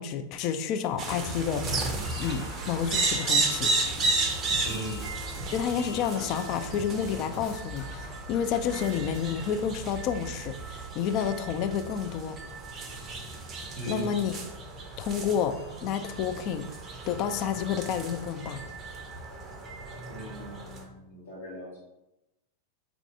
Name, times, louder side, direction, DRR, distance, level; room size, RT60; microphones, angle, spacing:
voice 1, 0.0-1.7 2.2-3.7 5.5-12.4 13.9-14.4 15.0-15.5 15.8-16.7 17.1-18.6, left 8 dB, 40° left, 8 dB, 0.3 m, -30 dB
sound 1, 1.0-9.2, left 2 dB, 25° left, 1.1 m, -43 dB
sound 2, 1.0-20.8, right 3 dB, 25° right, 0.5 m, -34 dB
voice 2, 4.6-5.0 13.7-14.0 20.1-21.8, equal, 65° left, -4 dB, 1.2 m, -39 dB
3.9 x 2.4 x 3.5 m, 0.93 s
figure-of-eight pair, 90°, 0 cm